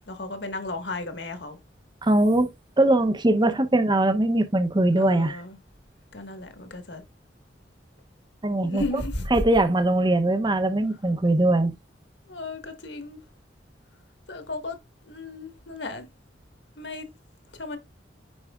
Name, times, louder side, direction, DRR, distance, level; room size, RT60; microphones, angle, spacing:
voice 1, 0.1-1.6 3.4-3.6 5.0-5.6 6.1-7.0 8.6-9.4 12.3-13.2 14.3-14.8 15.0-16.0 16.8-17.1 17.6-17.8, left 2 dB, 70° left, 1.5 m, -34 dB
voice 2, 2.0-2.5 2.8-5.4 8.4-9.0 9.3-11.7, right 1 dB, 25° right, 0.7 m, -21 dB
9.6 x 4.7 x 2.4 m
head